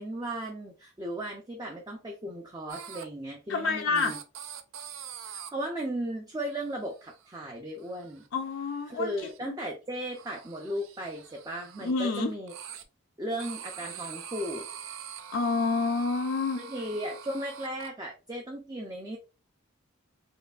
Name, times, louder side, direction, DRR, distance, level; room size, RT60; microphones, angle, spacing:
voice 1, 0.0-4.2 5.2-8.2 8.9-12.5 13.2-14.6 16.5-19.2, right 1 dB, 20° right, 0.4 m, -36 dB
sound 1, 2.7-3.0 3.9-5.5 6.4-6.7 7.0-7.4 7.8-8.3 8.5-9.4 10.1-11.9 12.5-12.8 13.4-17.9, right 8 dB, 75° right, 0.5 m, -44 dB
voice 2, 3.5-4.1 8.3-9.1 9.5-9.6 11.8-12.3 15.3-16.6, left 4 dB, 60° left, 0.4 m, -28 dB
4.4 x 2.6 x 2.4 m
head